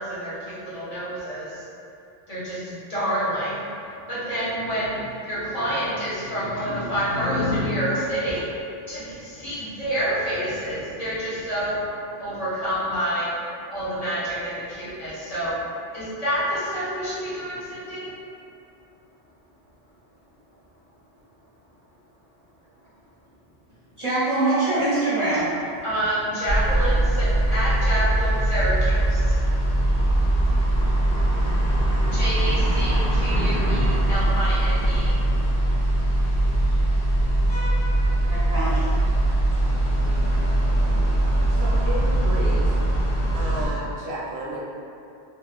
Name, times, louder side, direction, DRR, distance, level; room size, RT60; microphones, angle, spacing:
voice 1, 0.0-1.6 2.3-8.5 8.9-11.8 12.2-13.3 13.7-15.5 15.9-18.1 25.8-29.4 32.1-35.1, equal, 40° left, -11 dB, 0.9 m, -28 dB
voice 2, 24.0-25.5 38.3-39.0, right 2 dB, 35° right, -12 dB, 0.6 m, -23 dB
sound 1, 26.5-43.7, right 1 dB, 85° left, 1.1 m, -21 dB
voice 3, 41.5-42.8 43.3-44.6, right 1 dB, 85° right, -5 dB, 0.9 m, -32 dB
2.8 x 2.5 x 2.3 m, 2.6 s
omnidirectional pair, 1.0 m